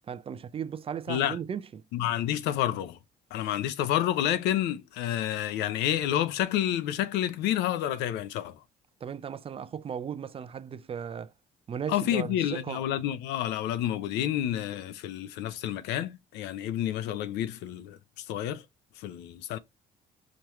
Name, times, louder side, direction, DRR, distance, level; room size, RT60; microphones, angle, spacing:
voice 1, 0.1-1.8 9.0-11.3 11.7-12.8, right 8 dB, 35° right, 0.5 m, -36 dB
voice 2, 1.9-3.0 3.3-8.6 11.9-18.6 19.0-19.6, left 11 dB, 90° left, 0.7 m, -29 dB
5.2 x 2.9 x 3.1 m
cardioid pair, 110°, 17 cm